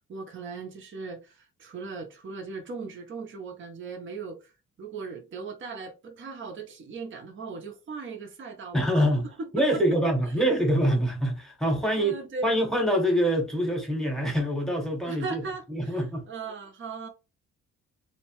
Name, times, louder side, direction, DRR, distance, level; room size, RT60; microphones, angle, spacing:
voice 1, 0.1-4.5 4.8-9.8 12.0-12.5 15.0-17.1, right 4 dB, 40° right, 0.7 m, -38 dB
voice 2, 8.7-9.2 9.5-12.2 12.4-15.4 15.7-16.3, equal, ahead, 1.1 m, -25 dB
2.8 x 2.1 x 2.9 m
cardioid pair, 90°, 30 cm